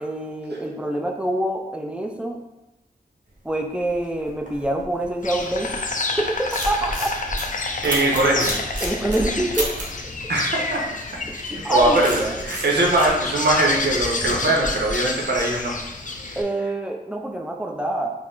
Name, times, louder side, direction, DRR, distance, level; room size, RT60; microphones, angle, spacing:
voice 1, 0.0-2.4 3.4-5.7 6.2-7.2 8.8-9.7 11.6-12.3 16.4-18.1, right 1 dB, 5° right, 2 dB, 0.5 m, -26 dB
sound 1, 3.6-5.9 6.3-10.0 11.3-15.7, right 1 dB, 45° right, 1.0 m, -32 dB
Insect, 5.2-16.4, left 3 dB, 45° left, 0.5 m, -29 dB
voice 2, 7.8-8.6 10.3-10.8 11.5-15.7 16.3-16.4, right 1 dB, 65° right, -1 dB, 0.8 m, -21 dB
4.7 x 2.1 x 3.7 m, 0.97 s
wide cardioid pair, 55°, 19 cm